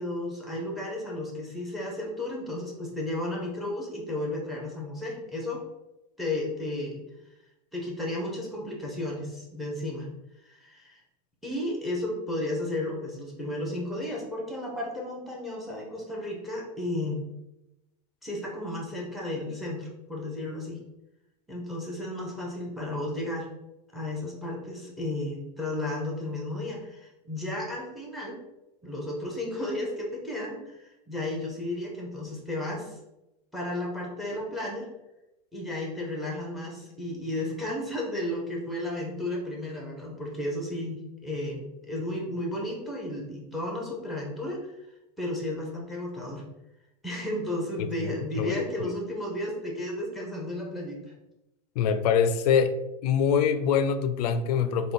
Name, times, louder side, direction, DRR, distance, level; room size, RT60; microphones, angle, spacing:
voice 1, 0.0-5.6 6.2-7.0 7.7-10.1 10.4-11.0 11.4-17.2 18.2-20.8 21.5-23.5 23.9-28.4 28.8-33.0 33.5-34.9 35.5-44.8 45.2-46.4 47.0-51.1, left 1 dB, ahead, -2 dB, 0.9 m, -33 dB
voice 2, 48.4-48.9 51.8-52.7 53.0-54.9, left 7 dB, 75° left, 11 dB, 0.4 m, -24 dB
3.3 x 2.3 x 3.9 m, 0.93 s
supercardioid pair, 145°, 20 cm